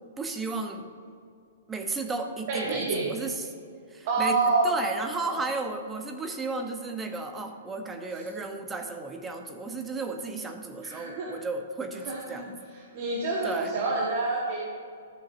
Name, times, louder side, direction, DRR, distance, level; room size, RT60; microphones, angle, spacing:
voice 1, 0.2-0.8 1.7-3.5 3.9-4.4 4.6-12.6 13.4-13.7, right 3 dB, 15° right, 5 dB, 0.9 m, -34 dB
voice 2, 2.5-3.1 4.0-4.6 5.1-5.4 10.8-11.3 12.0-12.5 12.9-14.6, right 3 dB, 50° right, -3 dB, 1.3 m, -27 dB
13.5 x 6.9 x 2.7 m, 2.4 s
hypercardioid pair, 120°, 0 cm